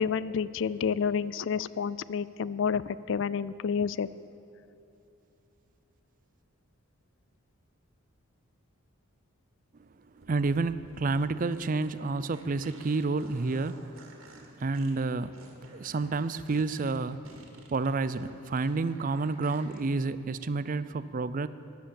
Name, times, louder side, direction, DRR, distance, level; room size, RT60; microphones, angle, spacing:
voice 1, 0.0-4.1, left 6 dB, 55° left, 18 dB, 0.3 m, -29 dB
voice 2, 10.2-14.1 14.6-15.4 15.7-17.2 17.7-21.5, right 3 dB, 40° right, 15 dB, 0.4 m, -29 dB
sound 1, 10.2-19.8, right 2 dB, 70° right, 2.4 m, -54 dB
15.0 x 10.5 x 7.6 m, 2.9 s
head